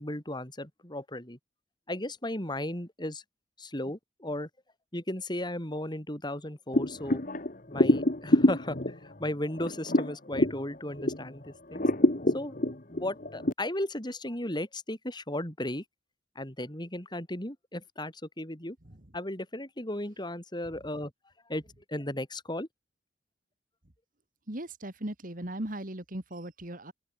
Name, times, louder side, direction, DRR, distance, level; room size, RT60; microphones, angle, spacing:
voice 1, 0.0-1.4 1.9-3.2 3.6-4.5 4.9-7.2 7.7-11.9 12.3-15.8 16.4-18.8 19.1-21.1 21.5-21.6 21.9-22.7, left 1 dB, 25° left, 5.9 m, -35 dB
sound 1, 6.7-11.3 11.7-13.5, left 1 dB, 50° left, 2.0 m, -26 dB
voice 2, 24.5-26.9, right 1 dB, 50° right, 2.6 m, -38 dB
open air
head